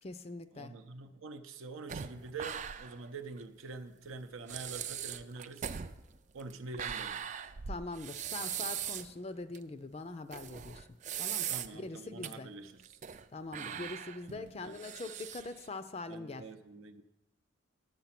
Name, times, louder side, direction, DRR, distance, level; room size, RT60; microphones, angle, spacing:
voice 1, 0.0-0.8 7.7-10.9 11.2-11.5 11.7-12.5 13.3-16.5, left 3 dB, 30° left, 11 dB, 0.4 m, -43 dB
voice 2, 0.5-5.7 6.3-7.2 11.5-12.7 13.6-13.9 14.3-14.8 16.1-17.0, right 3 dB, 80° right, 7 dB, 0.6 m, -46 dB
sound 1, 1.9-3.1 3.4-3.5 4.1-4.2 4.5-9.1 9.5-9.6 10.3-11.9 12.2-12.3 12.8-13.3 13.5-15.7, right 9 dB, 35° right, 0.3 m, -40 dB
10.5 x 7.5 x 5.9 m, 0.99 s
head